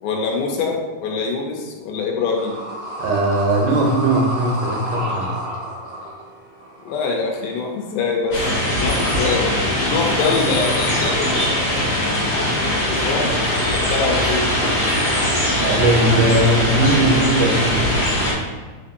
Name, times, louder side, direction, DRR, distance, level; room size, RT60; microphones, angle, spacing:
voice 1, 0.0-2.6 6.9-8.4 8.7-9.5 9.9-11.9 12.3-14.5, left 4 dB, 80° left, 0 dB, 2.1 m, -24 dB
sound 1, 2.3-8.7, right 1 dB, 70° right, 1.0 m, -31 dB
voice 2, 3.0-5.4 15.6-17.9, right 1 dB, 90° right, 0 dB, 2.2 m, -19 dB
sound 2, 8.3-18.3, left 1 dB, 60° left, 2.3 m, -20 dB
5.0 x 2.6 x 2.5 m, 1.4 s
omnidirectional pair, 3.7 m